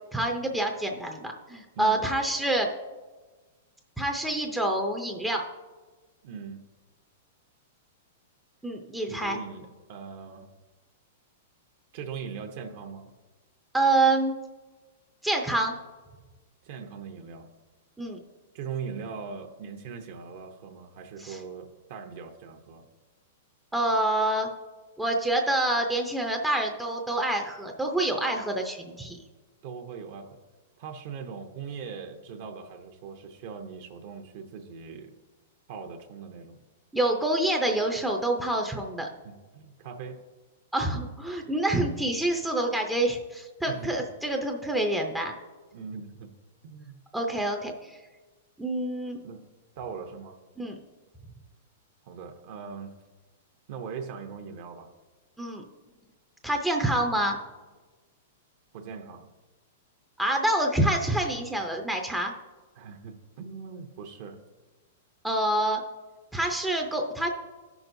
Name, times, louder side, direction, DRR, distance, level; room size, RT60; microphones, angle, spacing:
voice 1, 0.1-2.7 4.0-5.4 8.6-9.4 13.7-14.3 15.2-15.8 18.0-18.2 21.2-21.4 23.7-24.5 25.0-29.2 36.9-39.1 40.7-45.3 47.1-48.0 48.6-49.2 50.6-50.8 55.4-55.6 56.4-57.4 60.2-62.3 65.2-65.8 66.3-67.3, right 1 dB, 5° right, 1 dB, 0.6 m, -27 dB
voice 2, 6.2-6.6 9.1-10.5 11.9-13.1 16.6-17.5 18.5-22.9 29.6-30.4 30.8-35.1 35.7-36.6 39.2-40.2 43.6-43.9 45.7-46.3 46.6-47.0 49.2-49.5 49.8-50.4 52.1-52.9 53.7-54.9 58.7-59.3 62.7-64.4, right 6 dB, 50° right, 3 dB, 0.8 m, -40 dB
14.0 x 6.0 x 2.6 m, 1.3 s
hypercardioid pair, 155°, 0 cm